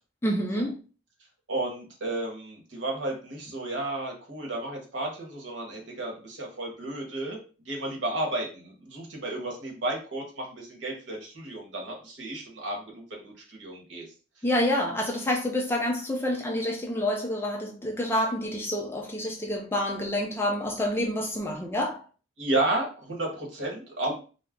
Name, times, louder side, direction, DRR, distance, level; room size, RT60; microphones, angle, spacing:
voice 1, 0.2-0.8 14.4-22.0, left 1 dB, 10° left, 0.3 m, -28 dB
voice 2, 1.5-7.4 7.6-14.1 22.4-24.1, right 2 dB, 65° right, 1.0 m, -32 dB
2.4 x 2.0 x 3.5 m
head